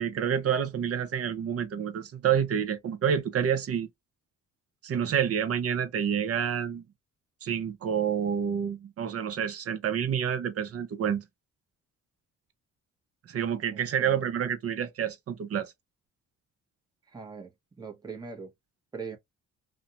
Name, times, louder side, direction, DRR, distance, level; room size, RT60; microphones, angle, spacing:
voice 1, 0.0-3.9 4.8-6.8 7.4-11.2 13.3-15.7, right 8 dB, 50° right, 0.7 m, -28 dB
voice 2, 13.7-14.3 17.1-17.5 17.8-18.5 18.9-19.2, right 5 dB, 15° right, 0.8 m, -41 dB
2.5 x 2.2 x 2.7 m
cardioid pair, 90°, 30 cm